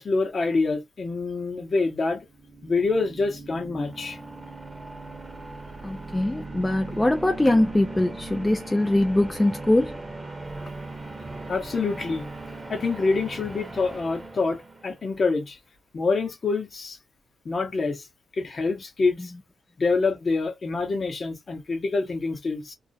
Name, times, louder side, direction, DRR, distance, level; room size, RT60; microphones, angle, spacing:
voice 1, 0.0-2.2 2.6-4.2 11.5-12.3 12.7-15.6 15.9-17.0 17.4-18.1 18.4-19.3 19.8-22.7, left 3 dB, 40° left, 0.8 m, -26 dB
sound 1, 2.2-15.2, right 2 dB, 20° right, 0.8 m, -39 dB
voice 2, 5.8-10.0, left 1 dB, 15° left, 0.3 m, -22 dB
2.4 x 2.1 x 2.6 m
cardioid pair, 90°, 0 cm